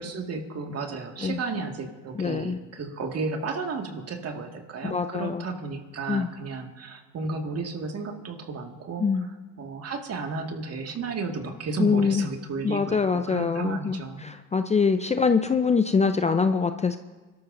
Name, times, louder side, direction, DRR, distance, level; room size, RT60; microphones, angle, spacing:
voice 1, 0.0-9.1 9.6-14.3, right 4 dB, 45° right, 4 dB, 1.9 m, -33 dB
voice 2, 2.1-2.6 4.8-5.5 6.1-6.3 9.0-9.3 11.8-12.3 12.6-17.0, left 5 dB, 20° left, 9 dB, 0.6 m, -24 dB
25.0 x 12.5 x 2.6 m, 1.3 s
hypercardioid pair, 75°, 35 cm